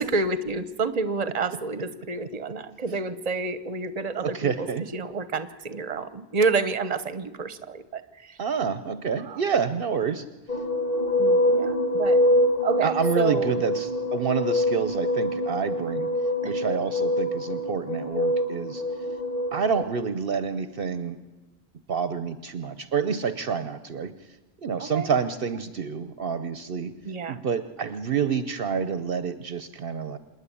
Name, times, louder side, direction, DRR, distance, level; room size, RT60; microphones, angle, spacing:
voice 1, 0.0-4.7 4.9-8.4 9.2-9.4 11.2-12.2 12.6-13.5 24.8-25.1 27.0-27.4, right 4 dB, 40° right, 13 dB, 1.1 m, -29 dB
voice 2, 4.2-4.9 8.4-10.2 12.8-16.1 16.4-18.8 19.5-21.2 21.9-24.1 24.6-26.9 27.3-30.2, right 6 dB, 60° right, 12 dB, 1.0 m, -28 dB
sound 1, 10.5-19.8, left 1 dB, 55° left, 2.7 m, -25 dB
27.0 x 9.8 x 10.0 m, 1.2 s
omnidirectional pair, 1.1 m